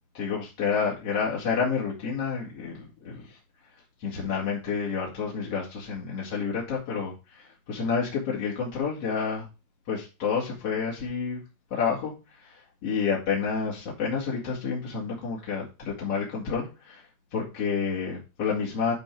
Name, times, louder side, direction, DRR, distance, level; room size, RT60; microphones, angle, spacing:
voice 1, 0.1-3.4 4.0-9.5 9.9-11.4 11.7-18.9, left 6 dB, 45° left, -4 dB, 2.3 m, -29 dB
11.5 x 4.5 x 4.6 m, 0.28 s
omnidirectional pair, 5.8 m